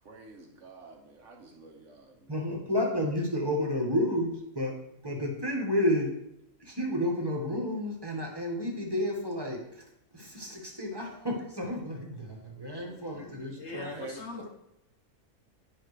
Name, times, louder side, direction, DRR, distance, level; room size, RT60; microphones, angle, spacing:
voice 1, 0.0-2.6 12.8-13.0 14.0-14.2, right 3 dB, 55° right, 2 dB, 1.3 m, -48 dB
voice 2, 2.3-4.8 5.0-6.1 6.6-9.8 10.1-14.0, left 1 dB, 15° right, 0 dB, 1.4 m, -31 dB
voice 3, 13.6-14.5, left 3 dB, 55° left, 2 dB, 1.1 m, -41 dB
9.8 x 5.7 x 3.2 m, 0.81 s
omnidirectional pair, 1.6 m